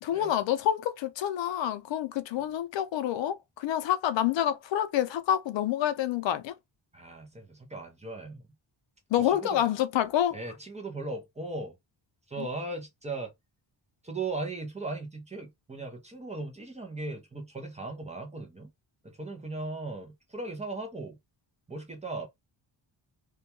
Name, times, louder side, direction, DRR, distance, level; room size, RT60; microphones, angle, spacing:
voice 1, 0.0-6.5 9.1-10.4, left 11 dB, 80° left, 0.5 m, -28 dB
voice 2, 6.9-8.4 9.2-9.6 10.3-11.7 12.3-13.3 14.0-18.7 19.0-21.2 21.7-22.3, right 3 dB, 15° right, 0.5 m, -38 dB
2.3 x 2.2 x 2.7 m
wide cardioid pair, 170°, 44 cm